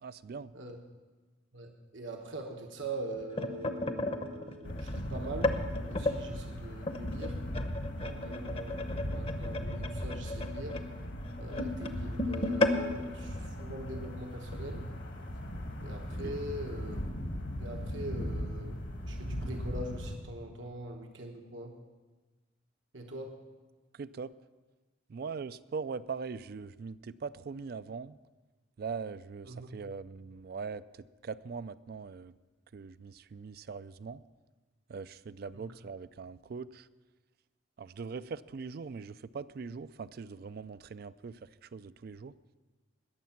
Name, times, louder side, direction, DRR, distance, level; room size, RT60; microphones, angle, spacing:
voice 1, 0.0-0.5 16.2-16.3 23.9-24.3 25.1-28.2 28.8-30.8 31.2-32.3 32.7-34.2 34.9-36.9 37.8-42.3, right 5 dB, 50° right, 16 dB, 0.4 m, -41 dB
voice 2, 1.5-5.5 5.9-7.4 8.0-10.8 11.4-14.9 15.8-17.0 17.6-18.8 19.1-21.7 22.9-23.3 29.5-29.7 35.5-35.6, right 1 dB, 75° right, 3 dB, 1.1 m, -42 dB
sound 1, 2.9-6.2 6.8-14.1 14.5-14.7 15.0-15.3 16.0-16.1, left 2 dB, 30° left, 0.8 m, -35 dB
sound 2, 4.6-20.2, equal, 65° left, 1.5 m, -38 dB
20.0 x 7.3 x 5.9 m, 1.3 s
head